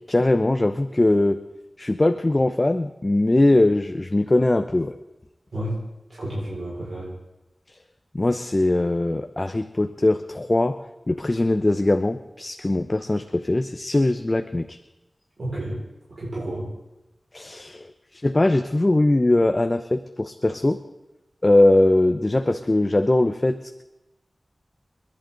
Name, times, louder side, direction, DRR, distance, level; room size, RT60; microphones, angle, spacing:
voice 1, 0.1-1.4 1.8-4.9 8.1-10.8 11.1-14.8 17.3-20.8 21.4-23.8, left 2 dB, 35° left, 8 dB, 0.7 m, -21 dB
voice 2, 6.1-7.1 15.4-15.8 16.1-16.7, right 1 dB, 80° right, -7 dB, 5.4 m, -30 dB
29.5 x 11.0 x 3.9 m, 1.0 s
wide cardioid pair, 55°, 0 cm